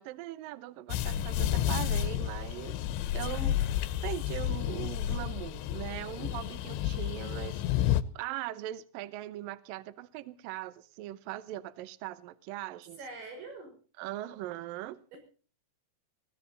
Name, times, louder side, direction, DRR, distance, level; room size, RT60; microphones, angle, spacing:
voice 1, 0.0-2.8 3.1-3.6 4.0-13.0 14.0-15.0, right 14 dB, 85° right, 2.0 m, -40 dB
sound 1, 0.9-8.0, left 11 dB, 80° left, 3.0 m, -31 dB
voice 2, 13.0-13.8 15.1-15.2, right 3 dB, 70° right, 8.7 m, -44 dB
21.0 x 16.0 x 4.0 m
omnidirectional pair, 5.5 m